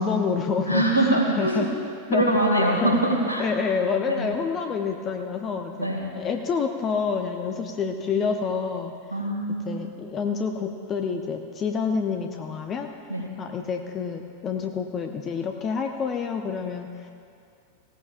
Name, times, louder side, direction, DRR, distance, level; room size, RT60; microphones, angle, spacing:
voice 1, 0.0-1.7 2.1-2.4 2.8-2.9 3.4-8.9 9.6-12.9 13.4-17.1, left 5 dB, 25° left, 5 dB, 0.8 m, -28 dB
voice 2, 0.7-1.7 2.1-3.4 4.1-4.3 5.8-6.1 9.1-9.8 13.1-13.3, right 1 dB, 85° left, 0 dB, 2.2 m, -23 dB
18.5 x 16.5 x 2.5 m, 2.4 s
figure-of-eight pair, 90°, 0 cm